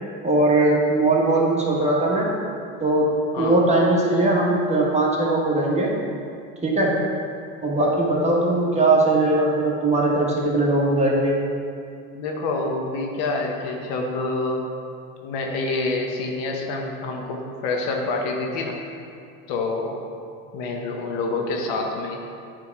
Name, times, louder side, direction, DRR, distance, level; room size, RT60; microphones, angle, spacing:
voice 1, 0.2-2.3 2.8-5.9 6.6-6.9 7.6-11.4, right 2 dB, 15° right, -4 dB, 1.6 m, -20 dB
voice 2, 12.1-14.6 15.2-18.8 19.5-20.0 20.5-22.2, left 3 dB, 70° left, 1 dB, 1.1 m, -27 dB
8.6 x 3.6 x 4.7 m, 2.4 s
supercardioid pair, 95°, 40 cm